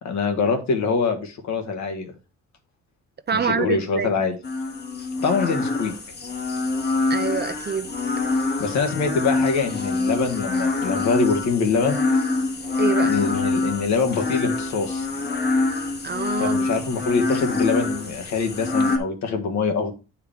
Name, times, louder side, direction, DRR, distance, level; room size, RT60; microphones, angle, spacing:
voice 1, 0.0-2.1 3.3-4.4 5.2-5.9 8.6-12.0 13.0-15.1 16.4-19.9, left 4 dB, 65° left, 1.5 m, -24 dB
voice 2, 3.3-4.1 7.1-7.9 12.8-13.2 16.0-16.6, right 6 dB, 35° right, 0.6 m, -26 dB
sound 1, 4.4-19.0, left 3 dB, 35° left, 1.3 m, -25 dB
8.7 x 4.7 x 3.6 m
cardioid pair, 90°, 30 cm